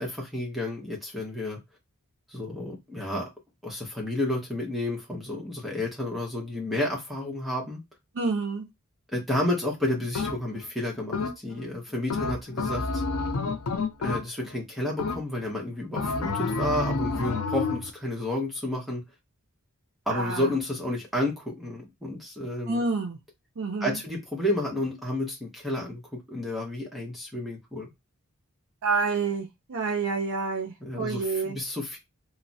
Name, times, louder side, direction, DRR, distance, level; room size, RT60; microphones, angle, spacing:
voice 1, 0.0-1.6 2.3-3.3 3.6-7.8 9.1-13.0 14.0-19.0 20.1-22.8 23.8-27.9 30.8-32.0, left 1 dB, ahead, 0.6 m, -31 dB
voice 2, 8.1-8.7 20.1-20.5 22.7-23.2 23.6-24.0 28.8-31.6, right 4 dB, 65° right, 0.5 m, -28 dB
sound 1, 10.1-10.7 11.1-11.7 12.1-14.6 15.0-15.5 16.0-17.9, left 4 dB, 80° left, 0.4 m, -29 dB
3.1 x 2.0 x 2.6 m
head